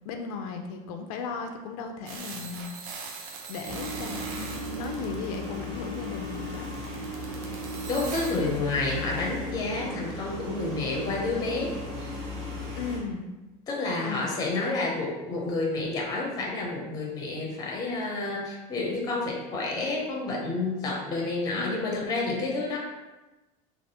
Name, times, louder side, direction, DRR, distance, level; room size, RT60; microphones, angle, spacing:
voice 1, 0.0-2.7 3.5-6.7 12.7-13.2 14.0-14.3 21.5-22.1, left 5 dB, 80° left, 4 dB, 0.4 m, -36 dB
sound 1, 2.1-8.6, right 4 dB, 65° right, 0.6 m, -42 dB
sound 2, 3.7-13.0, left 1 dB, 40° right, 0.8 m, -36 dB
voice 2, 7.9-11.7 12.0-12.1 13.7-22.8, left 3 dB, 20° left, -2 dB, 0.6 m, -29 dB
3.3 x 2.4 x 2.7 m, 1.1 s
cardioid pair, 170°, 18 cm